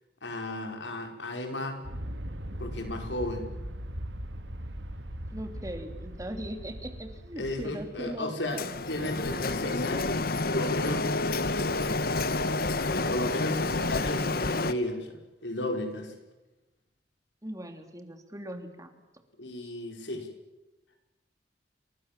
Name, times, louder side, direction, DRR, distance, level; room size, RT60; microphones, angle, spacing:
voice 1, 0.2-1.8 2.6-3.5 7.4-8.6 8.9-11.1 11.5-11.9 12.9-16.1 19.4-20.3, left 1 dB, 90° left, 4 dB, 5.3 m, -34 dB
Aircraft, 1.8-8.2, equal, 90° right, 2.2 m, -39 dB
voice 2, 5.3-8.6 17.4-19.0 19.6-19.7, equal, 20° right, 6 dB, 3.2 m, -40 dB
Printer, 8.6-14.7, left 3 dB, 55° left, 1.1 m, -29 dB
29.5 x 24.5 x 7.6 m, 1.0 s
head